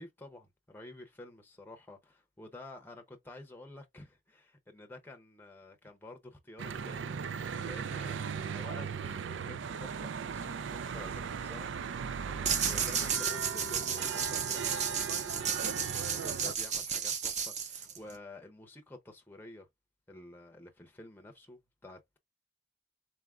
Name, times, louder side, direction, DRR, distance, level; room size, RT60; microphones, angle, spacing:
voice 1, 0.0-11.7 12.0-19.7 20.1-22.2, left 2 dB, 10° left, 0.6 m, -51 dB
Church bell / Traffic noise roadway noise, 6.6-16.5, right 6 dB, 85° right, 0.4 m, -38 dB
sound 1, 12.5-18.2, right 7 dB, 40° right, 0.6 m, -33 dB
4.0 x 3.5 x 2.4 m
head